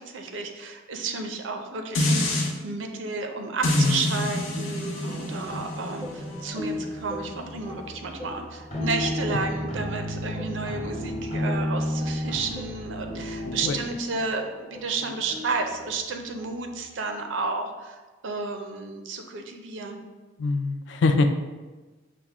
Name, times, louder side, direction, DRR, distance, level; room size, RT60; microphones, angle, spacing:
voice 1, 0.0-20.0, right 3 dB, 70° right, 5 dB, 0.5 m, -32 dB
sound 1, 1.9-2.5 3.6-8.8 9.2-9.3, left 1 dB, 90° left, 1.0 m, -28 dB
voice 2, 3.7-4.2 13.4-13.8 20.4-21.4, left 3 dB, 65° left, 6 dB, 0.3 m, -24 dB
sound 2, 5.1-16.8, left 2 dB, 5° left, 0.5 m, -39 dB
sound 3, 8.7-13.9, equal, 35° left, 0.8 m, -31 dB
5.8 x 2.1 x 3.4 m, 1.3 s
head